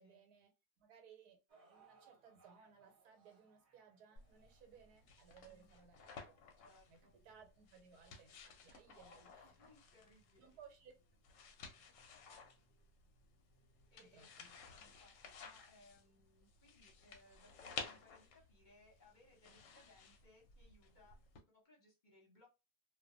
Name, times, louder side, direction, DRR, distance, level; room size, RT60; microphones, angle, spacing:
voice 1, 0.0-1.4 1.7-6.4 6.9-9.7 10.4-10.9 14.0-14.5, right 7 dB, 85° right, 1.3 m, -63 dB
sound 1, 1.5-7.7 8.4-8.5 9.3-9.4, right 5 dB, 50° right, 1.0 m, -71 dB
sound 2, 4.2-21.4, left 5 dB, 65° left, 0.9 m, -55 dB
voice 2, 5.4-5.8 6.6-7.1 8.9-10.5 13.9-14.3 14.8-21.2 21.5-22.5, left 2 dB, 40° left, 0.8 m, -67 dB
2.5 x 2.2 x 2.5 m
omnidirectional pair, 1.6 m